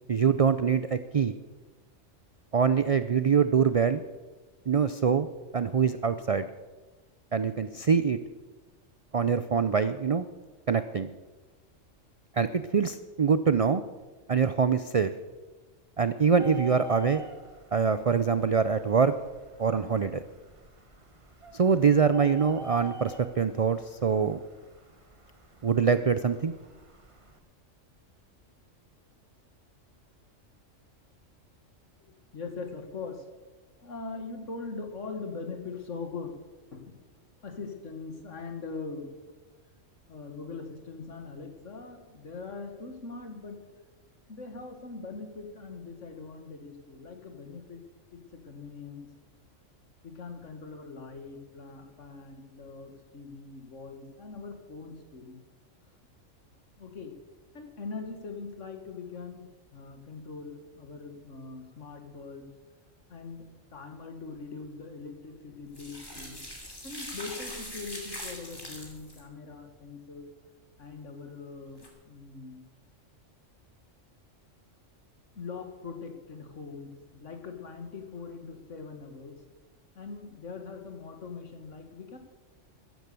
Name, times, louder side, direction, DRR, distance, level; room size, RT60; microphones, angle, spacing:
voice 1, 0.1-1.3 2.5-4.0 4.7-5.3 5.5-6.5 7.3-8.2 9.1-10.3 10.7-11.1 12.4-13.8 14.3-15.1 16.0-17.2 17.7-19.1 19.6-20.2 21.5-24.4 25.6-26.5, right 6 dB, 70° right, 12 dB, 0.3 m, -24 dB
Bird, 16.2-27.4, right 2 dB, 25° right, 1.3 m, -48 dB
voice 2, 32.0-33.3 33.8-36.4 36.7-37.0 37.4-39.2 40.1-43.6 44.3-47.8 48.1-49.1 50.0-55.4 55.9-56.0 56.8-57.1 57.5-59.5 59.7-62.5 63.1-63.4 63.7-66.4 66.8-70.3 70.8-72.7 75.3-79.4 80.0-82.2, left 4 dB, 70° left, 5 dB, 2.1 m, -41 dB
sound 1, 65.7-69.2 71.7-71.9, equal, 20° left, 2.8 m, -41 dB
14.5 x 10.5 x 6.8 m, 1.2 s
omnidirectional pair, 1.3 m